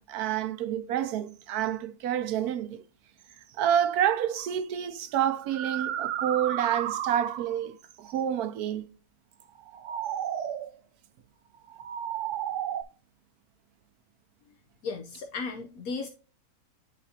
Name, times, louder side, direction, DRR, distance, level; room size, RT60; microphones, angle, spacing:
voice 1, 0.0-2.8 3.6-8.9, right 10 dB, 85° right, 1.2 m, -28 dB
sound 1, 4.4-4.5 5.3-7.7 9.6-10.7 11.7-12.8, right 10 dB, 65° right, 0.8 m, -33 dB
voice 2, 14.8-16.1, left 4 dB, 75° left, 1.2 m, -35 dB
9.8 x 3.9 x 2.7 m
omnidirectional pair, 1.6 m